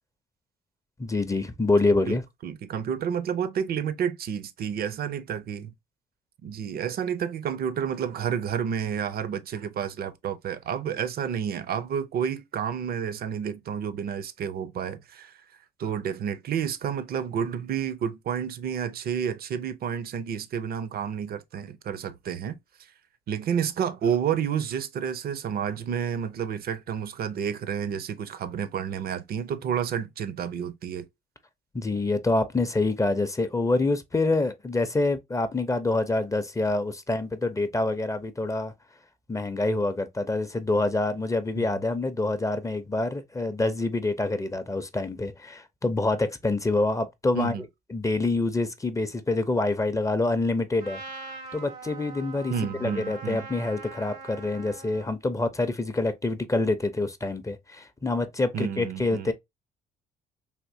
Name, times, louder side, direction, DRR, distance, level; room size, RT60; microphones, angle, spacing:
voice 1, 1.0-2.2 31.7-38.7 39.3-51.0 51.5-52.5 52.8-59.3, left 2 dB, 15° left, 0.5 m, -26 dB
voice 2, 2.4-5.7 6.4-15.4 15.8-22.6 23.3-31.1 41.6-41.8 47.3-47.6 52.5-53.5 58.5-59.3, right 8 dB, 55° right, 0.5 m, -30 dB
Trumpet, 50.8-55.1, right 3 dB, 90° right, 1.2 m, -42 dB
3.5 x 2.7 x 2.5 m
supercardioid pair, 75°, 19 cm